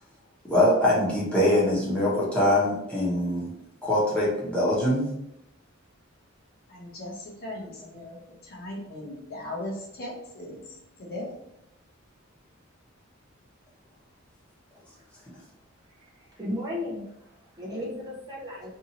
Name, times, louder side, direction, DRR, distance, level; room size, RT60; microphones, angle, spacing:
voice 1, 0.4-3.5 3.8-5.1, left 1 dB, 5° left, -7 dB, 0.9 m, -23 dB
voice 2, 6.7-8.2 8.4-11.4, left 1 dB, 45° left, -3 dB, 0.8 m, -38 dB
voice 3, 16.0-18.7, left 1 dB, 20° right, -5 dB, 0.5 m, -35 dB
2.7 x 2.5 x 2.8 m, 0.81 s
head